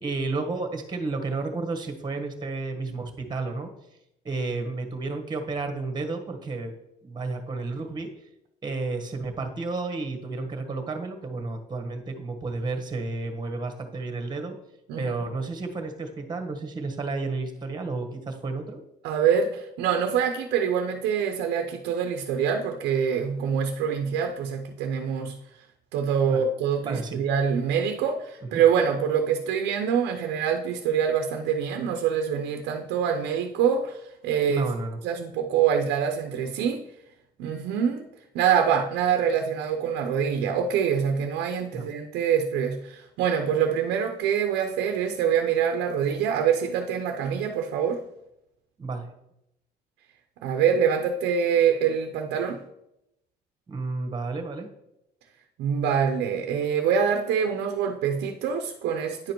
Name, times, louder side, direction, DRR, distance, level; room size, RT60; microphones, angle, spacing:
voice 1, 0.0-3.7 4.2-6.7 7.0-8.1 8.6-14.6 15.0-18.8 26.2-26.4 26.8-27.2 28.5-28.6 34.5-35.0 41.7-41.9 48.8-49.1 53.7-54.7, right 3 dB, 25° right, 5 dB, 1.4 m, -31 dB
voice 2, 14.9-15.2 19.0-25.4 25.9-34.7 35.0-36.8 37.4-38.1 38.3-48.0 50.4-52.6 55.6-59.3, right 7 dB, 85° right, 5 dB, 0.7 m, -25 dB
9.8 x 5.1 x 4.5 m, 0.85 s
cardioid pair, 110°, 17 cm